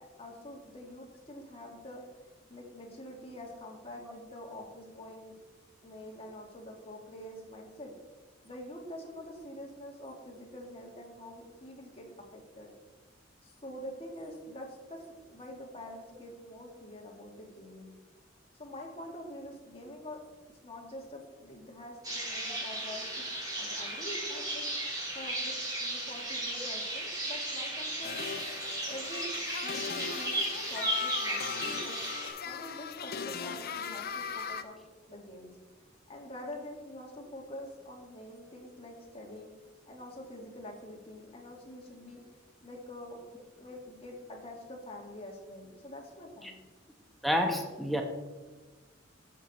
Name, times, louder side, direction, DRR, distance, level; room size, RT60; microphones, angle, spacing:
voice 1, 0.2-2.0 2.5-5.3 5.8-7.9 8.4-12.7 13.4-18.0 18.6-20.2 20.6-23.3 23.6-24.6 25.1-28.3 28.9-29.3 29.6-30.4 30.7-32.0 32.5-34.8 35.1-35.6 36.1-39.5 39.9-42.2 42.6-43.2 43.6-46.6, left 1 dB, 30° left, 0 dB, 2.1 m, -46 dB
sound 1, 22.0-32.3, right 1 dB, 20° right, 3.8 m, -35 dB
sound 2, 28.0-34.6, left 6 dB, 50° left, 0.6 m, -38 dB
voice 2, 47.2-48.0, equal, ahead, 2 dB, 1.0 m, -29 dB
13.5 x 6.6 x 4.2 m, 1.3 s
head